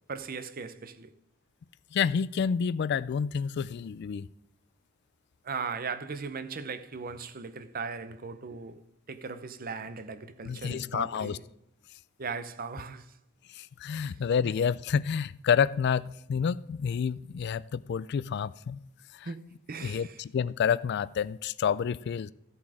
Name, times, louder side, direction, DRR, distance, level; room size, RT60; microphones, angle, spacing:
voice 1, 0.1-1.1 5.4-8.8 9.1-11.4 12.2-13.0 19.3-20.1, right 5 dB, 45° right, 0.7 m, -38 dB
voice 2, 1.9-4.3 10.4-11.4 13.5-18.8 19.2-19.3 19.8-22.3, left 7 dB, 55° left, 0.3 m, -29 dB
14.5 x 7.2 x 4.9 m
head